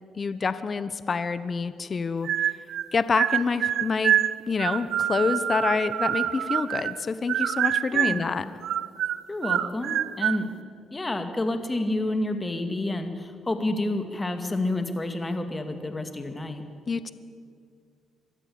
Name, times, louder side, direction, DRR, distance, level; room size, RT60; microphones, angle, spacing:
voice 1, 0.2-2.3 2.9-4.2 4.5-8.5 16.9-17.1, left 4 dB, 40° left, 13 dB, 0.9 m, -27 dB
sound 1, 2.2-2.9 3.2-7.0 7.3-8.3 8.6-10.4, right 11 dB, 75° right, 0.6 m, -26 dB
voice 2, 7.9-8.3 9.3-10.5 10.9-16.6, left 2 dB, 20° left, 7 dB, 2.2 m, -29 dB
23.0 x 14.0 x 8.7 m, 2.3 s
cardioid pair, 90°, 0 cm